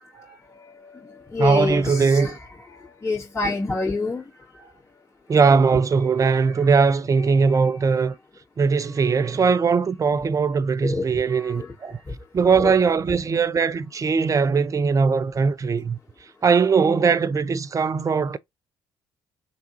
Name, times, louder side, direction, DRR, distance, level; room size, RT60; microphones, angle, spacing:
voice 1, 0.1-2.4 2.7-4.3 4.5-4.6 6.3-6.7 7.5-7.7 10.8-12.1 12.6-12.7, left 3 dB, 20° left, 1.9 m, -29 dB
voice 2, 1.4-2.3 5.3-8.1 8.6-12.0 12.3-16.0 16.4-18.4, right 5 dB, 25° right, 0.4 m, -20 dB
3.4 x 2.8 x 4.1 m
figure-of-eight pair, 45°, 13 cm